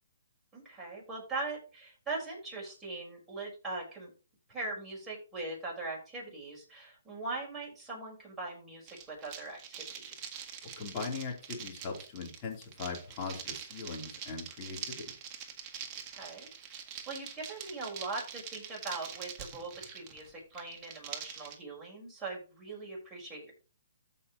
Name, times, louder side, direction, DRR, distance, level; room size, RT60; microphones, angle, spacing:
voice 1, 0.5-4.1 4.5-10.3 16.1-16.8 17.1-23.5, right 3 dB, 10° right, -4 dB, 5.0 m, -41 dB
sound 1, 8.9-21.5, right 8 dB, 25° right, 1.7 m, -44 dB
voice 2, 10.8-15.1, left 4 dB, 30° left, 0 dB, 3.6 m, -40 dB
14.5 x 5.7 x 3.1 m, 0.35 s
hypercardioid pair, 150°, 0 cm